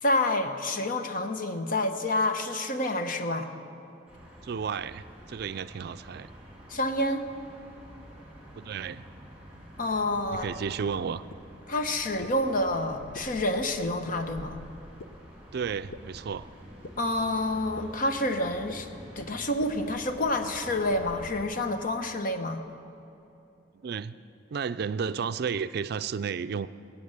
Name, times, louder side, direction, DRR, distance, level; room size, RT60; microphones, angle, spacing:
voice 1, 0.0-3.5 6.7-7.3 9.8-10.5 11.7-14.6 17.0-18.9 19.2-22.6, left 1 dB, 50° left, 7 dB, 1.0 m, -28 dB
sound 1, 4.1-21.4, equal, 5° right, 3.3 m, -48 dB
voice 2, 4.4-6.3 8.6-9.0 10.3-11.2 15.5-16.5 23.8-24.2 24.5-26.7, right 6 dB, 60° right, 13 dB, 0.4 m, -32 dB
sound 2, 11.3-11.4 12.2-12.3 13.1-13.2 14.1-14.2 15.0-15.1 15.9-16.0 16.8-16.9 17.8-17.9 18.7-18.8 19.6-19.7, left 3 dB, 80° left, 0.7 m, -41 dB
19.5 x 8.7 x 6.5 m, 3.0 s
head